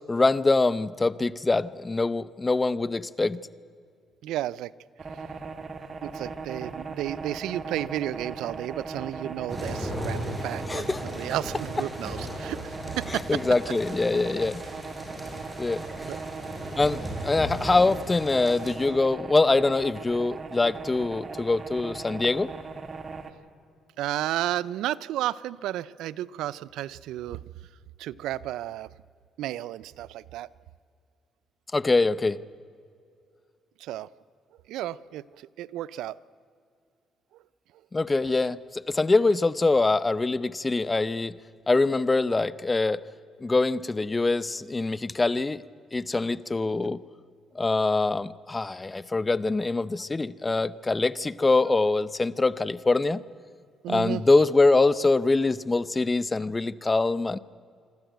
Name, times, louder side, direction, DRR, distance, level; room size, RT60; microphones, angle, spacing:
voice 1, 0.1-3.4 10.7-11.0 13.1-14.6 15.6-15.9 16.8-22.5 31.7-32.4 37.9-41.4 41.7-43.0 43.4-45.6 45.9-47.0 47.5-53.2 53.9-57.4, left 3 dB, 20° left, 18 dB, 0.7 m, -24 dB
voice 2, 4.2-4.7 6.0-13.4 16.0-16.2 24.0-27.4 28.0-28.9 29.4-30.5 33.8-34.1 34.7-36.2 53.8-54.2, right 13 dB, 90° right, 19 dB, 0.5 m, -32 dB
sound 1, 5.0-23.3, right 4 dB, 40° right, 1.7 m, -39 dB
sound 2, 9.5-18.7, equal, 10° right, 6.4 m, -37 dB
25.5 x 13.0 x 9.2 m, 2.3 s
cardioid pair, 90°, 0 cm